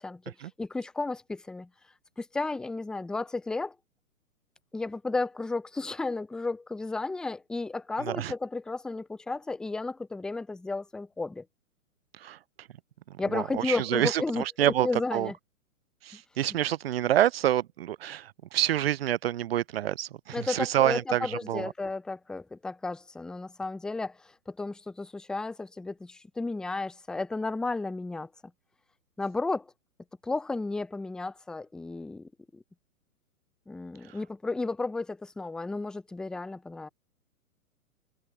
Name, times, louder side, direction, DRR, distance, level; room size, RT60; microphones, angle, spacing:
voice 1, 0.6-1.7 2.2-3.7 4.7-11.4 13.2-15.3 20.3-28.3 29.2-29.7 30.2-32.6 33.7-36.9, left 3 dB, ahead, 0.6 m, -33 dB
voice 2, 8.0-8.3 12.2-12.7 13.3-15.3 16.0-21.7 34.1-34.2, right 12 dB, 45° right, 0.6 m, -28 dB
figure-of-eight pair, 120°, 43 cm